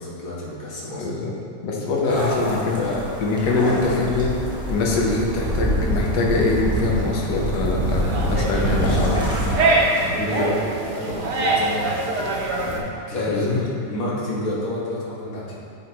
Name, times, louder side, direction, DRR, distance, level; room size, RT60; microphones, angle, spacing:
voice 1, 0.0-1.1 1.9-3.0 3.5-3.9 8.6-12.8 13.1-13.6 13.8-15.6, left 1 dB, 55° left, -6 dB, 1.5 m, -29 dB
voice 2, 0.9-1.3 1.6-2.8 3.2-4.3 4.7-9.2 10.2-10.5 13.3-13.6, left 3 dB, 85° left, -2 dB, 1.5 m, -23 dB
sound 1, 2.1-9.5, equal, 5° right, 0.8 m, -26 dB
sound 2, 7.8-12.8, right 2 dB, 70° right, 1.3 m, -24 dB
8.6 x 4.3 x 2.8 m, 2.4 s
omnidirectional pair, 1.9 m